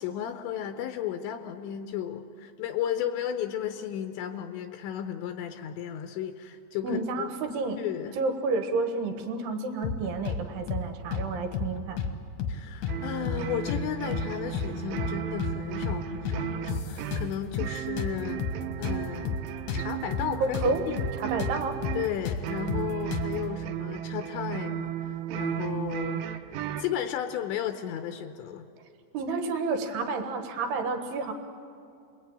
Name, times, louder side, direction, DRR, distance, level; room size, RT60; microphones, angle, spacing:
voice 1, 0.0-7.3 7.8-8.2 12.5-18.5 18.8-19.4 19.7-20.6 20.9-21.1 22.0-28.7, left 10 dB, 80° left, 7 dB, 3.0 m, -34 dB
voice 2, 6.8-7.8 8.2-12.0 20.4-20.8 21.1-21.8 29.1-31.3, right 3 dB, 65° right, 6 dB, 3.2 m, -30 dB
sound 1, 9.8-10.4 10.7-10.8 11.1-12.1 12.4-12.6 12.8-13.8 14.1-14.3 14.5-15.6 15.8-16.0 16.3-17.7 18.0-20.7 21.0-21.1 21.4-23.4, left 6 dB, 55° left, 2.1 m, -31 dB
sound 2, 12.9-27.0, right 11 dB, 85° right, 3.3 m, -35 dB
29.0 x 22.0 x 9.0 m, 2.5 s
omnidirectional pair, 5.4 m